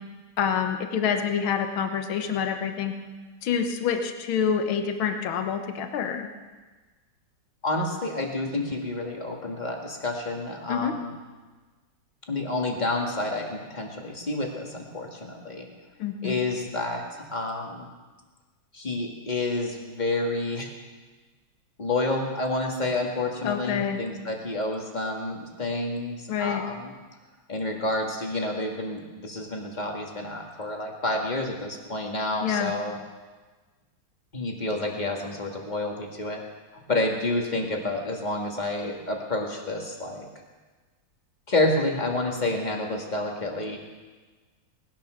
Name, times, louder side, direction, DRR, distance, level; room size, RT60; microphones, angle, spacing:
voice 1, 0.4-2.9 3.4-6.3 10.7-10.9 16.0-16.3 23.4-24.0 26.3-26.6 32.4-32.7, left 7 dB, 80° left, 6 dB, 1.9 m, -27 dB
voice 2, 7.6-11.1 12.3-15.7 16.2-17.9 18.7-20.7 21.8-26.9 27.5-33.0 34.3-36.4 36.9-40.3 41.5-43.8, left 2 dB, 20° left, 1 dB, 2.1 m, -29 dB
19.5 x 11.0 x 6.5 m, 1.3 s
omnidirectional pair, 2.2 m